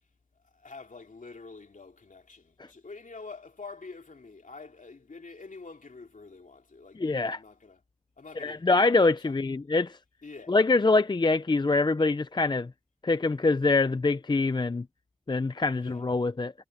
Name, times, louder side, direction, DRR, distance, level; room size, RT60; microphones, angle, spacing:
voice 1, 0.5-7.8 8.2-9.5 10.2-10.6 15.7-16.1, left 4 dB, 60° left, 2.9 m, -47 dB
voice 2, 7.0-7.4 8.4-10.0 10.5-12.7 13.0-14.9 15.3-16.5, left 3 dB, 30° left, 0.5 m, -24 dB
cardioid pair, 55°, 15 cm